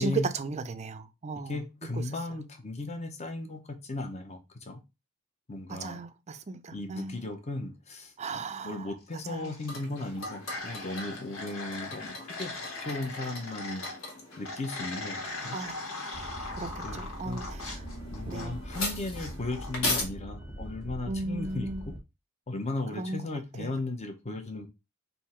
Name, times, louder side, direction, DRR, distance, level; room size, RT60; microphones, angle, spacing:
voice 1, 0.0-1.6 5.7-7.3 8.2-8.7 9.3-9.5 15.5-15.8 16.6-17.8 18.3-18.6 21.1-21.8 23.0-23.2 23.6-23.7, right 3 dB, 30° right, 0.4 m, -35 dB
voice 2, 1.3-4.8 5.5-6.0 6.7-12.5 12.8-13.9 14.4-15.6 16.8-17.4 18.1-21.9 22.5-24.7, left 2 dB, 30° left, 0.8 m, -36 dB
sound 1, 9.2-9.8 10.0-14.0 14.4-18.8 19.2-19.7, left 2 dB, 85° left, 1.6 m, -40 dB
sound 2, 9.7-20.0, left 2 dB, 65° left, 1.6 m, -39 dB
sound 3, 16.1-22.0, equal, 5° right, 1.1 m, -42 dB
3.6 x 2.7 x 4.3 m
head